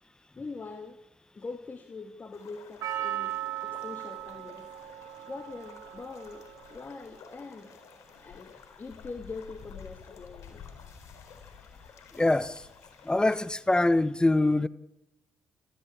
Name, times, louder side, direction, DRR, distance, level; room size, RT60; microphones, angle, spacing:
voice 1, 0.4-1.0 1.3-3.3 3.6-4.7 5.3-7.8 8.2-8.5 8.8-10.7, left 4 dB, 35° left, 2.4 m, -43 dB
sound 1, 2.3-13.5, left 7 dB, 70° left, 4.2 m, -51 dB
Percussion, 2.8-7.2 7.4-7.5, right 12 dB, 75° right, 3.2 m, -38 dB
voice 2, 12.1-12.6 13.0-14.7, left 2 dB, 15° left, 1.2 m, -24 dB
28.5 x 14.5 x 8.8 m
supercardioid pair, 55°, 5 cm